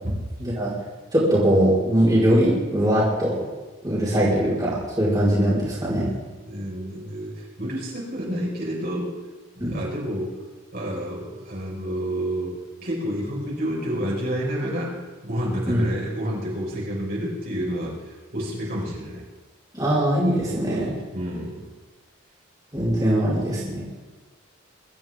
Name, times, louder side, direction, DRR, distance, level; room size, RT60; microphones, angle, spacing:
voice 1, 0.4-0.7 1.1-3.4 3.8-6.1 9.6-9.8 15.7-15.8 19.7-21.0 22.7-23.8, right 1 dB, 20° right, -8 dB, 4.7 m, -21 dB
voice 2, 6.5-9.1 9.5-10.4 10.7-15.0 15.2-19.2 21.1-21.7, equal, 50° right, -4 dB, 5.4 m, -29 dB
23.5 x 13.0 x 3.7 m, 1.3 s
head